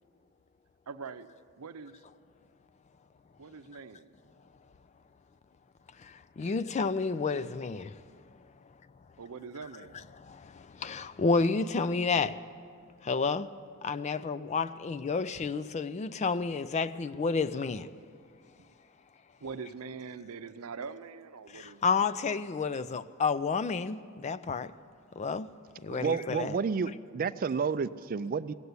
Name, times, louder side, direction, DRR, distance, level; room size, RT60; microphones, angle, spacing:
voice 1, 0.9-1.3 1.6-1.9 3.4-4.1 9.2-10.0 18.6-18.7 19.4-21.8 25.9-26.2, right 5 dB, 85° right, 0.6 m, -43 dB
voice 2, 6.0-8.0 10.2-12.4 13.0-13.5 13.8-17.9 21.5-24.7 25.2-25.5 25.8-26.6, left 4 dB, 30° left, 0.3 m, -30 dB
voice 3, 26.0-28.5, right 5 dB, 40° right, 0.4 m, -30 dB
16.0 x 8.1 x 9.6 m
head